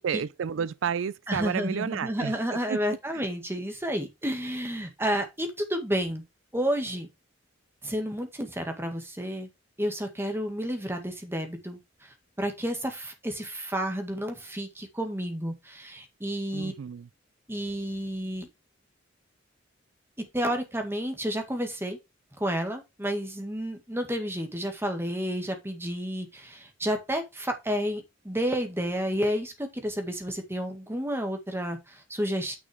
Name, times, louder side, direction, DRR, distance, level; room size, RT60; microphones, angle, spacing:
voice 1, 0.0-2.4 2.7-2.8 16.5-17.1, right 7 dB, 75° right, 0.4 m, -31 dB
voice 2, 1.3-6.2 6.5-7.1 7.8-9.5 9.8-16.7 17.5-18.5 20.2-22.0 22.4-32.6, equal, 10° right, 1.8 m, -31 dB
9.3 x 6.0 x 3.4 m
head